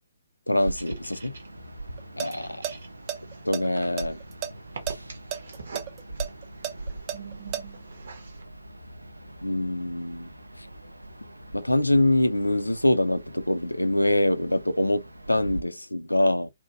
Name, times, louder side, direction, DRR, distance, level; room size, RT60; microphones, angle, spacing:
voice 1, 0.5-1.3 2.2-2.6 3.5-4.2 9.4-10.3 11.5-15.0 15.3-16.5, left 1 dB, 85° left, 0.4 m, -24 dB
sound 1, 0.6-15.6, right 2 dB, 85° right, 0.4 m, -42 dB
sound 2, 0.7-8.4, right 5 dB, 55° right, 0.7 m, -46 dB
sound 3, 2.0-2.3 2.6-2.7 3.1-4.5 4.9-5.0 5.3-7.6, right 10 dB, 25° right, 0.5 m, -32 dB
2.7 x 2.1 x 2.5 m
figure-of-eight pair, 130°, 0 cm